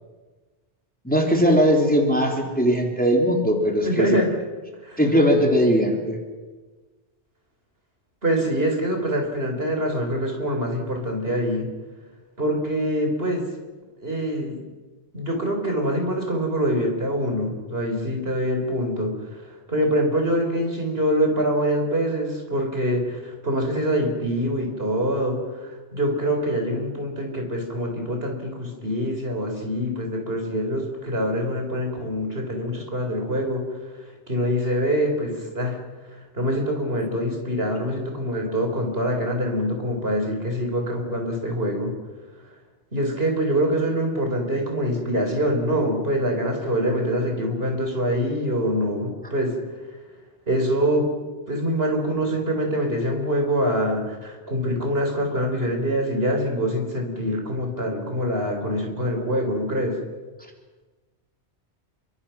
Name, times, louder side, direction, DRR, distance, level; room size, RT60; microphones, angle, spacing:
voice 1, 1.0-4.1 5.0-6.2, equal, 5° left, 1 dB, 3.2 m, -19 dB
voice 2, 3.8-4.3 4.8-5.0 8.2-11.7 12.4-13.5 14.0-14.6 15.1-19.4 19.7-33.6 34.3-35.8 36.1-41.9 42.9-49.5 50.5-51.1 51.5-60.0, equal, 60° right, 2 dB, 4.6 m, -24 dB
27.5 x 24.0 x 6.0 m, 1.3 s
omnidirectional pair, 1.2 m